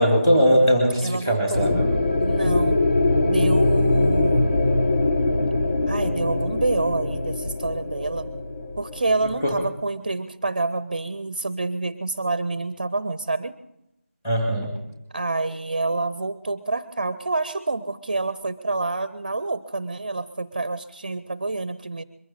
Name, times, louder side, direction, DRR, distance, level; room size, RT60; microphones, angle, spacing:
voice 1, 0.0-1.9 9.4-9.6 14.2-14.7, equal, 10° left, 2 dB, 2.1 m, -20 dB
voice 2, 1.0-1.8 2.2-2.8 3.2-4.6 5.9-8.3 8.8-13.5 15.1-22.0, right 3 dB, 35° right, 14 dB, 0.7 m, -27 dB
sound 1, 1.5-9.7, left 2 dB, 50° left, 3.0 m, -22 dB
22.5 x 14.5 x 4.1 m, 0.83 s
figure-of-eight pair, 175°, 7 cm